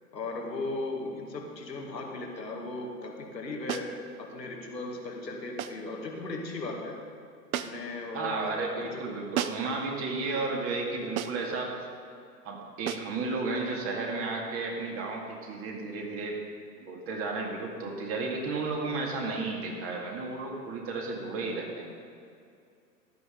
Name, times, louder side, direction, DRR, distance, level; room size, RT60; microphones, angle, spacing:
voice 1, 0.1-3.9 4.2-7.0 7.6-9.0, left 2 dB, 90° left, 0 dB, 2.1 m, -37 dB
sound 1, 3.7-4.0 5.6-5.9 7.5-8.0 9.3-9.8 11.2-11.5 12.9-13.2, right 10 dB, 60° right, 0.8 m, -33 dB
voice 2, 8.1-11.7 12.4-16.4 16.8-21.9, right 3 dB, 25° right, 0 dB, 2.3 m, -33 dB
15.0 x 11.5 x 3.8 m, 2.4 s
hypercardioid pair, 120°, 49 cm